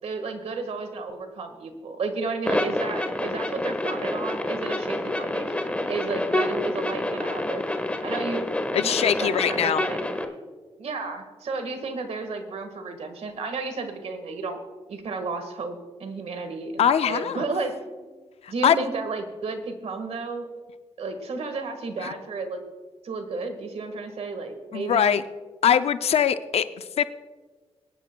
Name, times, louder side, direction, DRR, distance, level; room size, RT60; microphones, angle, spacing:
voice 1, 0.0-5.5 5.9-7.7 8.0-8.5 8.8-10.0 10.8-14.6 14.9-17.8 18.0-18.1 18.5-20.5 21.0-22.6 23.0-25.1, right 3 dB, 70° right, 7 dB, 1.6 m, -32 dB
sound 1, 2.4-10.2, left 1 dB, 10° left, 1.2 m, -28 dB
voice 2, 8.7-9.8 16.8-17.4 18.4-18.9 22.0-22.1 24.7-25.2 25.6-27.0, left 8 dB, 65° left, 12 dB, 0.4 m, -22 dB
22.5 x 10.0 x 2.2 m, 1.4 s
cardioid pair, 75°, 11 cm